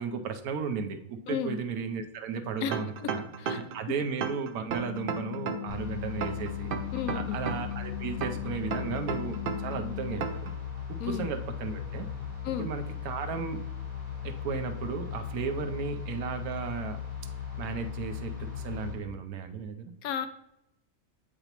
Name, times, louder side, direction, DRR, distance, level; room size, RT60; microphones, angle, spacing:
voice 1, 0.0-6.7 7.1-10.5 10.9-12.1 12.6-13.6 14.2-17.0 17.6-19.9, right 6 dB, 90° right, 7 dB, 1.2 m, -35 dB
voice 2, 1.3-1.6 2.6-3.1 3.4-3.6 6.9-7.4 11.0-11.3 12.4-12.7 20.0-20.3, left 8 dB, 80° left, 10 dB, 1.0 m, -33 dB
sound 1, 2.7-3.8 4.2-5.8 6.2-7.8 8.2-9.8 10.2-10.5, right 6 dB, 70° right, 0.5 m, -33 dB
sound 2, 4.7-10.2, left 22 dB, 65° left, 2.8 m, -40 dB
sound 3, 5.7-19.0, left 8 dB, 25° left, 1.6 m, -38 dB
7.9 x 4.9 x 2.9 m, 0.82 s
omnidirectional pair, 1.5 m